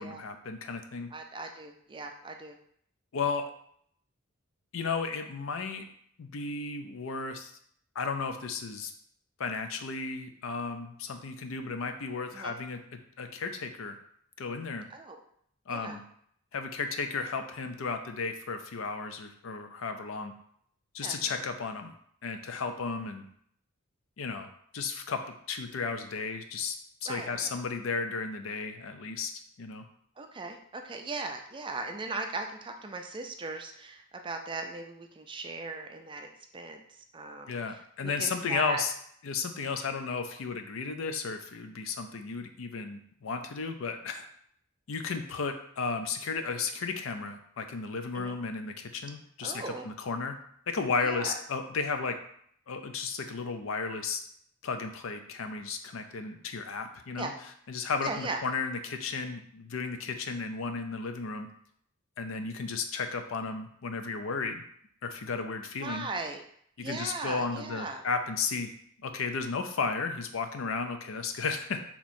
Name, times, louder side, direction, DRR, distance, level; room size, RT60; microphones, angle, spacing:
voice 1, 0.0-1.1 3.1-3.5 4.7-5.9 6.2-7.5 8.0-8.9 9.4-14.0 14.4-14.9 15.7-16.0 16.5-20.3 20.9-21.9 22.2-23.2 24.2-24.5 24.7-26.8 27.0-29.3 29.6-29.8 37.5-38.9 39.2-44.3 44.9-50.4 50.7-52.2 52.7-54.2 54.6-57.3 57.7-61.5 62.2-64.6 65.0-66.1 66.8-68.7 69.0-71.8, left 4 dB, 65° left, 7 dB, 0.5 m, -34 dB
voice 2, 1.1-2.6 12.3-12.5 14.9-15.2 15.7-16.0 21.0-21.4 27.1-27.5 30.2-38.8 48.1-48.4 49.4-49.9 51.0-51.4 57.2-57.3 58.0-58.4 65.8-66.4 66.8-68.0, right 3 dB, 25° right, 4 dB, 0.4 m, -38 dB
3.5 x 2.9 x 4.2 m, 0.66 s
head